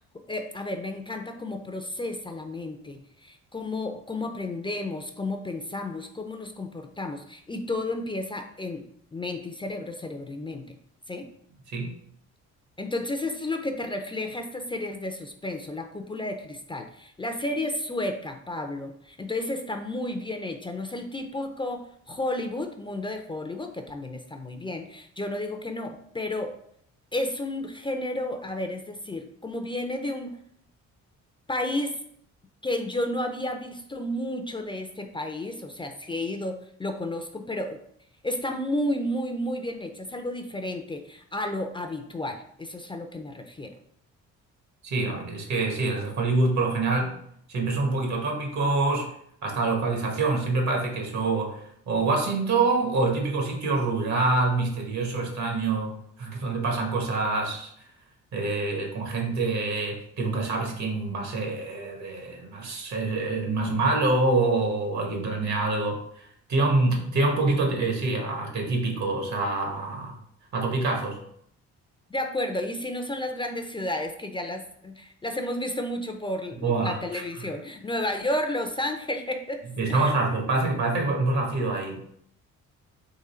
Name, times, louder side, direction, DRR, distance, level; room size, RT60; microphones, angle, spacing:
voice 1, 0.3-8.8 9.1-10.8 11.1-11.3 12.8-26.6 27.1-30.4 31.5-32.0 32.6-37.8 38.2-43.7 72.1-79.6 79.9-80.2, left 1 dB, 15° left, 4 dB, 0.4 m, -32 dB
voice 2, 44.8-47.2 47.5-49.1 49.4-57.7 58.3-66.2 66.5-70.2 70.5-71.2 76.5-77.5 79.8-82.2, right 3 dB, 70° right, 1 dB, 1.4 m, -26 dB
3.8 x 3.1 x 4.2 m, 0.69 s
cardioid pair, 90°, 30 cm